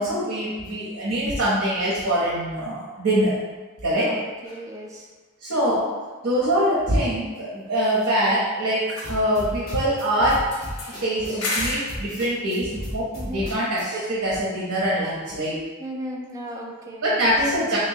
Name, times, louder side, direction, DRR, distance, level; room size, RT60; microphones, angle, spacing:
voice 1, 0.0-3.4 3.8-4.2 5.4-5.9 6.2-8.8 9.1-10.4 11.0-15.6 17.0-17.8, equal, 60° right, -6 dB, 0.7 m, -23 dB
voice 2, 3.9-5.1 13.1-13.5 15.8-17.3, right 1 dB, 15° right, -1 dB, 0.3 m, -36 dB
sound 1, 4.5-4.6 7.8-8.6 8.9-10.0 10.5-12.0, left 2 dB, 90° left, 0.7 m, -33 dB
sound 2, 9.0-14.1, equal, 45° left, 1.2 m, -35 dB
3.3 x 2.9 x 2.7 m, 1.3 s
head